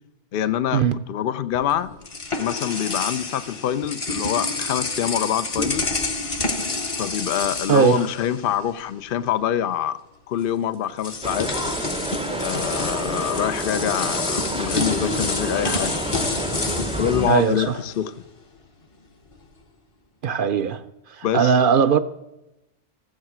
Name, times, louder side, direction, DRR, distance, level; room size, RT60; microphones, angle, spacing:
voice 1, 0.3-0.8 1.1-1.9 2.4-6.0 7.0-10.0 10.3-11.5 12.4-16.3 16.8-18.1 21.2-21.5, left 10 dB, 60° left, 0.7 m, -25 dB
sound 1, 1.5-8.8 9.1-9.3 10.4-10.5 11.0-18.1, left 3 dB, 30° left, 0.9 m, -29 dB
voice 2, 7.7-8.0 17.2-17.8 20.2-20.8 21.1-22.0, right 6 dB, 60° right, 0.7 m, -19 dB
sound 2, 11.2-17.3, right 1 dB, 10° right, 0.5 m, -29 dB
14.5 x 7.3 x 6.1 m
omnidirectional pair, 1.1 m